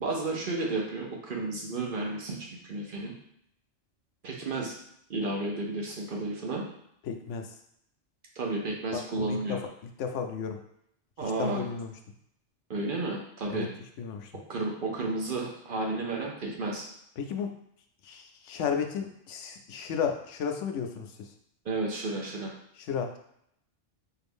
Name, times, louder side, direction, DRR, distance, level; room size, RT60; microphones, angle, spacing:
voice 1, 0.0-3.1 4.2-4.7 5.1-6.6 8.4-9.6 11.2-11.7 12.7-13.7 14.5-16.8 21.6-22.5, right 2 dB, 50° right, -1 dB, 0.8 m, -32 dB
voice 2, 7.0-7.6 8.9-9.6 10.0-10.6 11.2-11.9 13.5-13.7 14.0-14.3 17.2-17.5 18.0-21.3 22.8-23.2, left 6 dB, 85° left, 4 dB, 0.9 m, -33 dB
4.6 x 2.5 x 3.5 m, 0.73 s
omnidirectional pair, 1.2 m